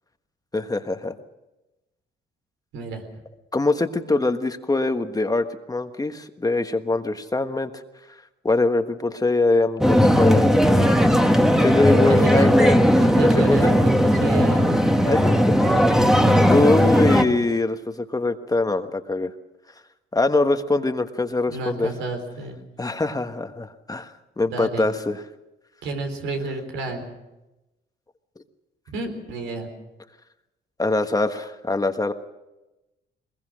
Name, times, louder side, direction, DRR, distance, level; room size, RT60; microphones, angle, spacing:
voice 1, 0.5-1.1 3.5-7.7 8.4-10.8 11.6-12.8 13.3-13.7 15.0-15.5 16.5-19.3 20.1-21.9 22.8-25.2 30.8-32.1, left 2 dB, 20° left, 8 dB, 1.3 m, -23 dB
voice 2, 2.7-3.0 11.9-12.5 13.0-14.8 15.6-16.6 21.5-22.6 24.5-24.9 25.8-27.1 28.9-29.7, right 3 dB, 85° right, 5 dB, 4.1 m, -30 dB
sound 1, 9.8-17.2, equal, ahead, 1.6 m, -17 dB
21.5 x 21.5 x 6.3 m, 1.0 s
cardioid pair, 90°, 20 cm